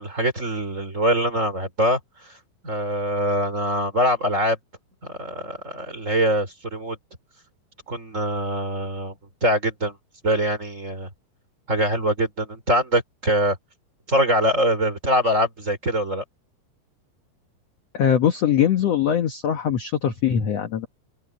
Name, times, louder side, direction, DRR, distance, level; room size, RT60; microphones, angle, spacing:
voice 1, 0.0-2.4 2.6-4.6 5.0-7.0 7.9-9.2 9.4-10.0 10.2-11.1 11.7-13.6 14.1-16.2, equal, 20° right, 4.1 m, -23 dB
voice 2, 17.9-20.9, left 9 dB, 65° left, 1.6 m, -21 dB
open air
omnidirectional pair, 4.7 m